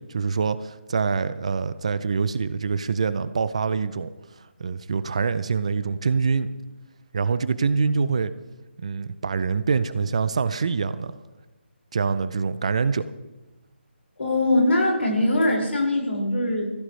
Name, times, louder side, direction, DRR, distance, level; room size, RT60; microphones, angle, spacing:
voice 1, 0.0-4.1 4.6-6.5 7.1-8.3 8.8-11.1 11.9-13.1, right 5 dB, 30° right, 14 dB, 0.5 m, -25 dB
voice 2, 14.2-16.7, left 1 dB, 80° left, -1 dB, 5.3 m, -22 dB
18.0 x 15.0 x 3.2 m, 1.1 s
hypercardioid pair, 175°, 6 cm